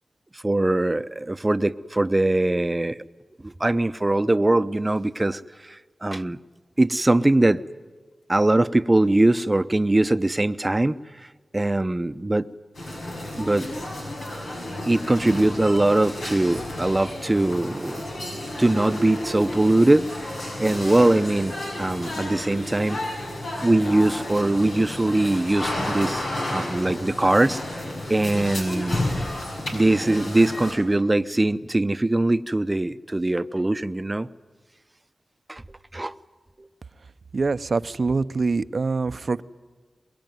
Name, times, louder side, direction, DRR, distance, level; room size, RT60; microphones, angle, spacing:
voice 1, 0.4-3.0 3.4-5.4 6.0-6.4 6.8-7.6 8.3-11.0 11.5-12.5 13.4-13.7 14.9-18.0 18.6-20.3 20.6-23.0 23.6-27.6 28.1-29.0 29.7-34.3 35.5-36.1 36.6-36.7, right 2 dB, 25° right, 13 dB, 0.8 m, -21 dB
sound 1, 12.7-30.7, left 1 dB, 90° left, 6.2 m, -32 dB
voice 2, 37.3-39.4, right 4 dB, 65° right, 13 dB, 0.7 m, -24 dB
23.5 x 22.0 x 9.3 m, 1.4 s
cardioid pair, 45°, 0 cm